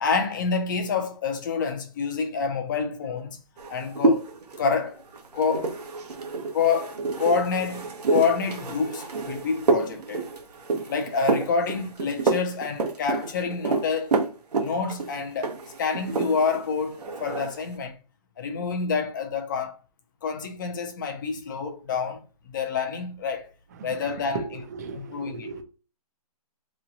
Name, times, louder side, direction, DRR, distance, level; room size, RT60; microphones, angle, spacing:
voice 1, 0.0-3.4 3.7-4.3 4.6-5.0 5.3-5.8 6.5-10.2 10.9-14.2 14.5-15.5 15.8-17.9 18.4-19.8 20.2-23.5 23.8-24.6 24.9-25.5, left 5 dB, 30° left, 0.5 m, -27 dB
sound 1, 3.6-16.7 16.9-17.6, right 3 dB, 90° right, 0.9 m, -28 dB
voice 2, 24.7-25.6, right 5 dB, 25° right, 0.5 m, -35 dB
3.1 x 2.2 x 3.8 m
hypercardioid pair, 160°, 20 cm